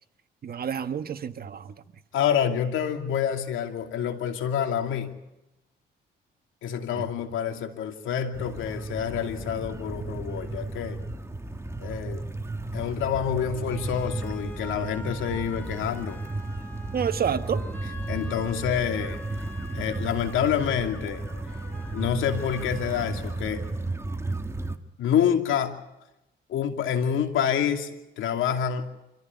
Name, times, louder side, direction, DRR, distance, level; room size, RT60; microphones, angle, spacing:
voice 1, 0.4-1.7 7.0-7.1 16.9-17.6, right 8 dB, 50° right, 10 dB, 1.4 m, -29 dB
voice 2, 2.1-5.2 6.6-11.0 11.8-12.2 12.7-16.2 18.1-19.2 19.7-21.2 21.9-23.6 25.0-25.8 26.5-27.9 28.2-28.8, left 8 dB, 80° left, 5 dB, 2.6 m, -27 dB
sound 1, 8.3-24.8, right 2 dB, 15° right, 1.8 m, -34 dB
sound 2, 13.1-24.1, left 1 dB, 10° left, 6.1 m, -46 dB
26.5 x 14.5 x 9.6 m, 0.93 s
cardioid pair, 90°, 20 cm